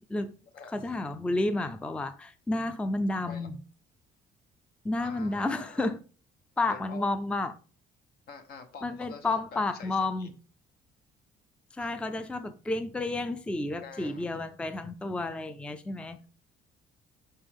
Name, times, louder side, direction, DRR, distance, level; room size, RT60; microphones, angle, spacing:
voice 1, 0.7-3.6 4.8-6.0 6.6-7.6 8.8-10.3 11.7-16.3, left 2 dB, 5° left, 0.4 m, -31 dB
voice 2, 5.0-5.8 6.7-7.2 8.3-10.3 11.8-11.9 13.8-14.3, left 5 dB, 65° left, 1.1 m, -46 dB
5.4 x 5.3 x 3.5 m
cardioid pair, 110°, 17 cm